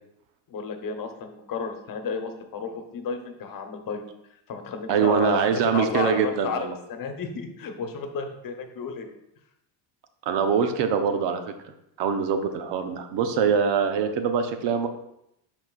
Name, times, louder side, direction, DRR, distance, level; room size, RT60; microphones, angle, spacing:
voice 1, 0.5-4.0 4.5-9.1, left 5 dB, 45° left, 5 dB, 1.2 m, -32 dB
voice 2, 4.9-6.7 10.3-11.4 12.0-14.9, right 6 dB, 65° right, 7 dB, 0.9 m, -23 dB
12.0 x 4.4 x 2.5 m, 0.80 s
supercardioid pair, 100°, 46 cm